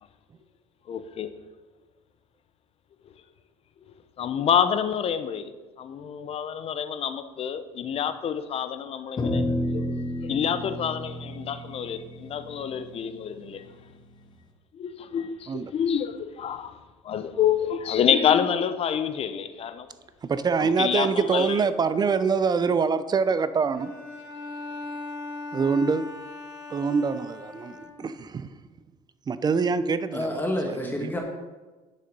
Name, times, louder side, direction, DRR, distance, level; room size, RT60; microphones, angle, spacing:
voice 1, 0.9-1.3 4.2-9.4 9.7-13.7 14.7-19.9 20.6-21.7, left 8 dB, 45° left, 11 dB, 0.8 m, -27 dB
sound 1, 9.2-13.7, left 1 dB, 30° left, 1.5 m, -31 dB
voice 2, 20.2-23.9 25.5-26.1 26.7-28.5 29.3-30.4 30.8-31.1, right 5 dB, 30° right, 13 dB, 0.7 m, -25 dB
Bowed string instrument, 23.7-28.3, left 3 dB, 75° left, 2.2 m, -39 dB
voice 3, 30.1-31.2, left 1 dB, 15° left, 1 dB, 1.6 m, -28 dB
9.7 x 6.7 x 5.4 m, 1.3 s
supercardioid pair, 95°, 13 cm